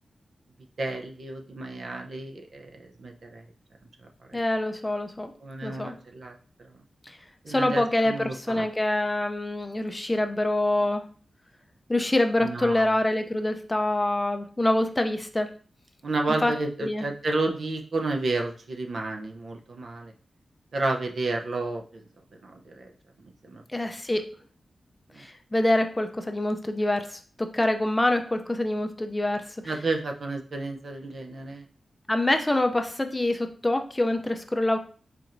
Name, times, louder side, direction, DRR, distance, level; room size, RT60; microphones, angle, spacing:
voice 1, 0.8-3.5 4.3-4.4 5.4-6.7 7.4-8.7 12.4-13.0 16.0-20.1 20.7-22.0 22.4-22.9 23.4-23.6 25.1-25.2 29.6-31.7, right 2 dB, 55° right, 2 dB, 0.6 m, -31 dB
voice 2, 4.3-5.3 5.6-6.0 7.1-7.2 7.5-11.0 11.9-15.5 16.4-16.5 16.8-17.1 23.7-24.3 25.2-29.6 32.1-34.8, left 1 dB, 15° left, 6 dB, 0.4 m, -25 dB
4.6 x 4.2 x 2.6 m, 0.42 s
wide cardioid pair, 115°, 0 cm